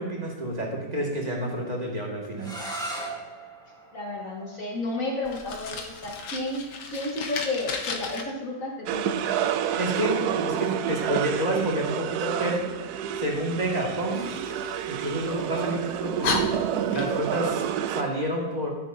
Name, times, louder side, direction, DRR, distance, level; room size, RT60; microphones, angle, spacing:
voice 1, 0.0-2.5 9.8-12.6 13.2-14.2 14.9-16.4 16.9-18.7, right 1 dB, 25° right, -1 dB, 1.9 m, -29 dB
sound 1, 2.4-8.1, right 2 dB, ahead, 1.6 m, -41 dB
voice 2, 3.9-6.6 6.9-9.5, left 2 dB, 50° left, -1 dB, 1.6 m, -32 dB
Fire, 5.2-8.2 14.1-15.4 15.9-16.0 16.2-17.4, left 4 dB, 75° left, 1.5 m, -33 dB
sound 2, 8.9-18.0, right 9 dB, 70° right, 0.9 m, -29 dB
12.5 x 9.9 x 2.7 m, 1.2 s
omnidirectional pair, 1.9 m